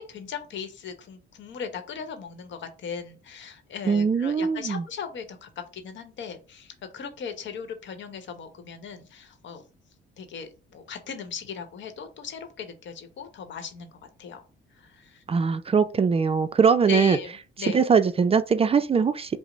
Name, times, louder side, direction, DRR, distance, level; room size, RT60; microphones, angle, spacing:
voice 1, 0.0-9.6 10.2-14.4 14.8-15.2 16.9-17.3 17.6-17.8, left 7 dB, 65° left, 0.9 m, -38 dB
voice 2, 3.9-4.8 15.3-17.2 17.7-19.4, right 6 dB, 30° right, 0.4 m, -21 dB
5.0 x 2.0 x 3.8 m
supercardioid pair, 75°, 21 cm